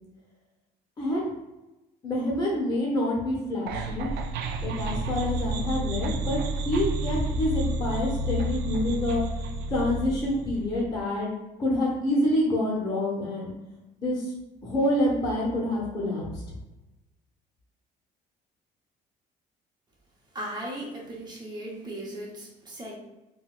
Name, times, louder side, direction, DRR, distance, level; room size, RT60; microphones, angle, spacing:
voice 1, 1.0-1.3 2.0-4.1 4.6-11.3 11.6-13.5 14.0-14.3 14.6-16.4, left 1 dB, 25° left, -5 dB, 0.9 m, -27 dB
sound 1, 3.7-10.8, right 1 dB, 80° right, 0.4 m, -30 dB
voice 2, 20.3-22.9, right 1 dB, 25° right, -2 dB, 1.0 m, -37 dB
3.8 x 2.2 x 2.4 m, 1.0 s
cardioid pair, 110°, 17 cm